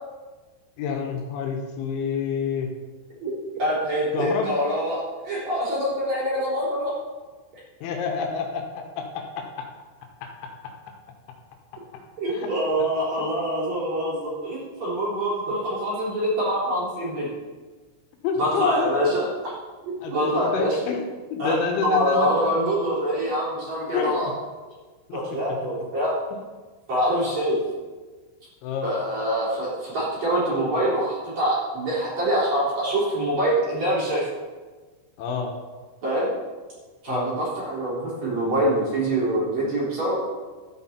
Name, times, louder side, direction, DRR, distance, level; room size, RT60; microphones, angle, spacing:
voice 1, 0.8-2.7 4.1-4.5 7.8-9.7 10.2-10.7 11.9-12.0 12.3-12.5 18.2-19.2 20.0-22.3 23.9-24.3 25.1-25.4 28.6-28.9 35.2-35.5 37.1-37.3, left 5 dB, 75° left, 3 dB, 3.5 m, -29 dB
voice 2, 3.2-6.9 12.2-17.3 18.4-19.3 19.8-20.8 21.4-21.5 21.8-24.3 25.1-26.2 26.9-27.6 28.8-34.3 36.0-36.3 37.0-40.2, equal, 40° right, -7 dB, 4.3 m, -25 dB
13.5 x 8.3 x 4.3 m, 1.4 s
omnidirectional pair, 5.6 m